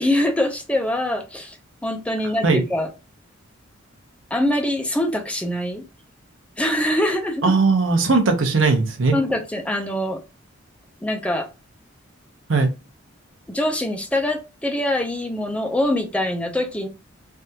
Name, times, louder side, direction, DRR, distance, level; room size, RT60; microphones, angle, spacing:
voice 1, 0.0-1.6 1.8-2.9 4.3-5.8 6.6-7.5 9.1-10.2 11.0-11.5 13.5-16.9, left 1 dB, 5° left, 0.4 m, -23 dB
voice 2, 7.4-9.1 12.5-12.7, right 3 dB, 65° right, 0.8 m, -18 dB
3.4 x 2.4 x 2.7 m
head